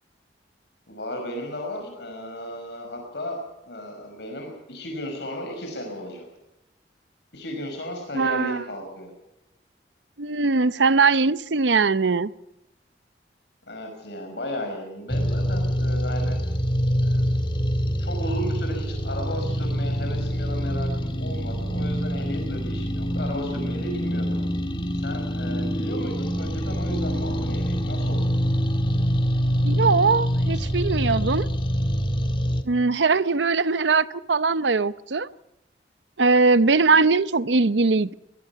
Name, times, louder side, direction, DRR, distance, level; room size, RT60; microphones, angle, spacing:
voice 1, 0.9-3.4 3.7-6.3 7.3-9.1 13.7-16.4 17.0-17.2 18.0-24.4 24.9-28.4 36.6-37.0, equal, 70° left, 5.4 m, -35 dB
voice 2, 8.1-8.6 10.2-12.3 29.6-31.5 32.6-35.3 36.2-38.1, right 4 dB, 85° right, 0.8 m, -21 dB
sound 1, 15.1-32.6, equal, 30° left, 1.6 m, -25 dB
22.5 x 21.0 x 5.8 m
head